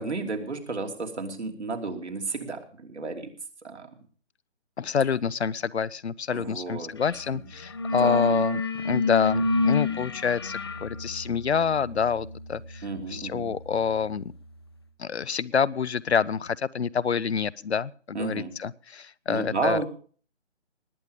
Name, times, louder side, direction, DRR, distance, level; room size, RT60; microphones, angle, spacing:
voice 1, 0.0-3.3 3.6-3.9 6.3-6.9 8.0-8.4 12.8-13.5 18.1-18.5 19.3-19.9, right 3 dB, 70° right, 3 dB, 3.0 m, -32 dB
voice 2, 4.8-14.3 15.0-19.8, left 6 dB, 65° left, 21 dB, 0.7 m, -27 dB
sound 1, 7.0-7.3 7.5-14.2, left 3 dB, 20° left, 0.7 m, -29 dB
19.5 x 8.7 x 5.1 m, 0.44 s
figure-of-eight pair, 155°, 35 cm